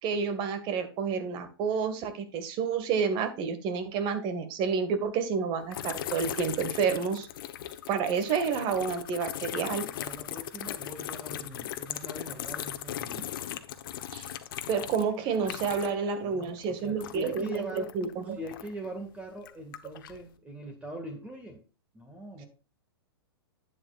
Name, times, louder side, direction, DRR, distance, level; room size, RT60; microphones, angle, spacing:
voice 1, 0.0-7.3 7.9-9.8 14.1-14.3 14.7-18.4, right 6 dB, 40° right, 9 dB, 1.9 m, -29 dB
sound 1, 5.7-16.1 16.3-18.9 19.4-20.2, left 11 dB, 60° left, 1.1 m, -38 dB
voice 2, 9.7-13.3 16.2-18.0 18.3-21.6 21.9-22.5, right 1 dB, 10° right, 4 dB, 1.9 m, -42 dB
11.0 x 9.2 x 2.5 m, 0.34 s
hypercardioid pair, 115°, 13 cm